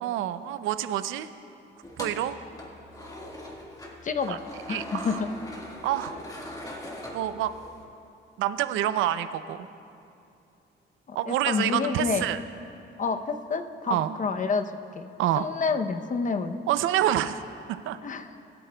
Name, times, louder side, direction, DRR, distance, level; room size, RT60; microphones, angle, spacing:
voice 1, 0.0-1.3 2.0-2.4 4.3-4.4 4.7-5.2 5.8-6.2 7.1-7.5 8.4-9.7 11.1-12.4 13.9-14.1 15.2-15.4 16.7-17.4 17.7-18.0, right 12 dB, 85° right, 12 dB, 0.5 m, -27 dB
sound 1, 1.8-7.8, left 1 dB, 15° left, 1.5 m, -41 dB
voice 2, 4.0-4.4 4.7-5.3 11.1-12.3 13.0-15.1 15.4-16.6 18.0-18.3, left 5 dB, 40° left, 8 dB, 0.7 m, -29 dB
22.0 x 8.6 x 2.3 m, 2.6 s
cardioid pair, 90°, 20 cm